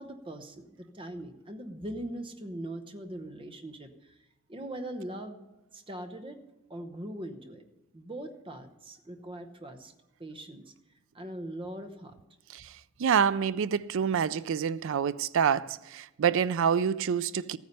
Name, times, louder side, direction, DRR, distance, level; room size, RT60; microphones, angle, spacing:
voice 1, 0.0-4.2 4.5-5.4 5.7-6.4 6.7-7.6 7.9-9.9 10.2-10.6 11.1-12.2, right 1 dB, 25° right, 0.9 m, -41 dB
voice 2, 13.0-17.6, right 7 dB, 60° right, 0.4 m, -27 dB
14.5 x 9.5 x 5.4 m
head